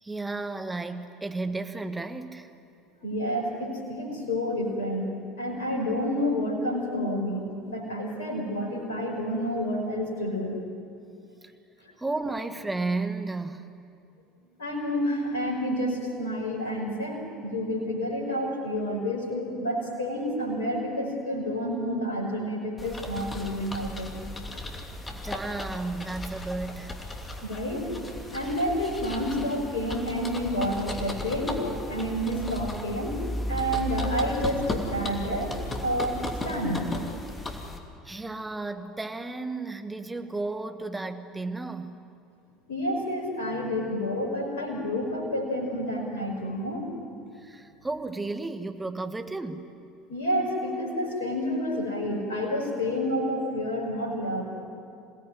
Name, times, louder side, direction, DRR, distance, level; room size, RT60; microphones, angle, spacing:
voice 1, 0.0-2.5 12.0-13.7 25.1-26.9 34.0-34.2 38.0-41.9 47.3-49.7, right 3 dB, 10° right, 7 dB, 1.7 m, -33 dB
voice 2, 3.0-10.6 14.6-24.1 27.4-33.2 33.5-36.9 42.7-46.9 50.1-54.4, equal, 70° left, 1 dB, 5.1 m, -29 dB
sound 1, 22.8-37.8, left 1 dB, 20° left, 2.9 m, -35 dB
27.0 x 18.0 x 9.5 m, 2.5 s
figure-of-eight pair, 65°, 0 cm